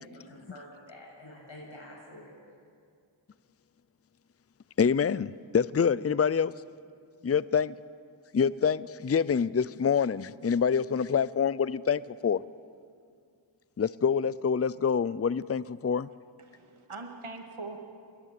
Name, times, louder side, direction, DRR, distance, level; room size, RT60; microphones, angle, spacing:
voice 1, 0.3-2.3, left 1 dB, 65° left, -4 dB, 7.4 m, -48 dB
voice 2, 4.8-6.5 7.2-7.7 8.3-12.4 13.8-16.1, left 6 dB, 30° left, 19 dB, 0.5 m, -26 dB
voice 3, 16.1-17.8, right 3 dB, 85° right, 4 dB, 2.0 m, -43 dB
28.0 x 20.5 x 8.3 m, 2.3 s
wide cardioid pair, 40°, 49 cm